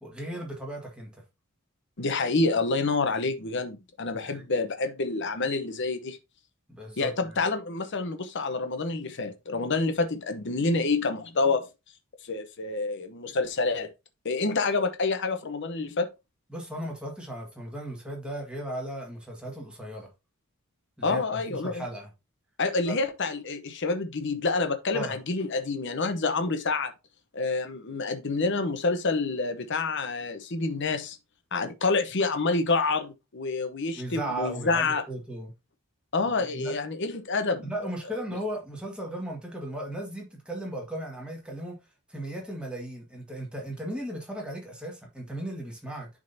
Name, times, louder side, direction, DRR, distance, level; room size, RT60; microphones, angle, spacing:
voice 1, 0.0-1.2 4.2-4.4 6.7-7.4 16.5-20.1 21.0-22.1 22.9-23.0 24.9-25.2 34.0-35.5 36.5-36.7 37.6-41.8 42.1-46.1, right 1 dB, 5° right, 1.8 m, -36 dB
voice 2, 2.0-6.2 7.0-11.7 12.2-13.9 14.2-16.1 21.0-21.8 22.6-26.9 27.3-31.2 31.5-35.0 36.1-37.7, left 3 dB, 55° left, 0.9 m, -28 dB
10.5 x 3.8 x 2.7 m
head